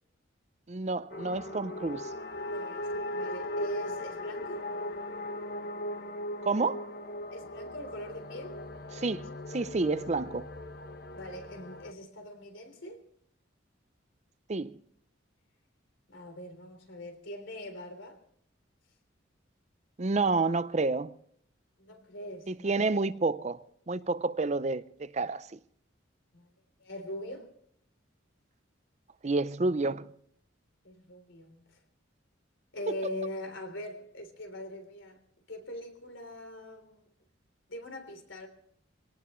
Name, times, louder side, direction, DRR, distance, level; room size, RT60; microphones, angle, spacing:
voice 1, 0.7-2.1 6.4-6.9 9.0-10.5 14.5-14.8 20.0-21.1 22.5-23.6 23.9-25.6 29.2-30.1 32.9-33.0, right 3 dB, 35° right, 0.5 m, -29 dB
sound 1, 1.1-11.9, left 1 dB, 50° left, 1.2 m, -38 dB
voice 2, 2.5-4.7 7.3-8.6 11.1-13.0 16.1-18.2 21.8-23.0 26.3-26.5 26.8-27.5 30.8-31.8 32.7-35.2 35.5-37.0 37.7-38.5, left 1 dB, 80° left, 3.5 m, -42 dB
24.0 x 18.0 x 3.2 m
head